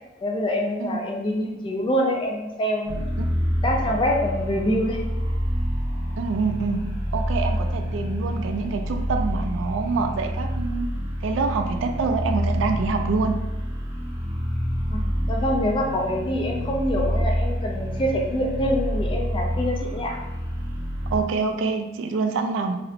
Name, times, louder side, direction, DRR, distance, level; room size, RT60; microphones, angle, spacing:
voice 1, 0.2-3.0 3.6-5.0 14.9-20.2, equal, 25° left, 1 dB, 0.3 m, -25 dB
sound 1, 2.9-21.2, equal, 15° right, 0.6 m, -27 dB
voice 2, 6.2-6.8 7.1-10.9 11.2-13.4 21.1-22.8, right 4 dB, 75° right, 5 dB, 0.3 m, -26 dB
2.8 x 2.0 x 2.4 m, 1.0 s
head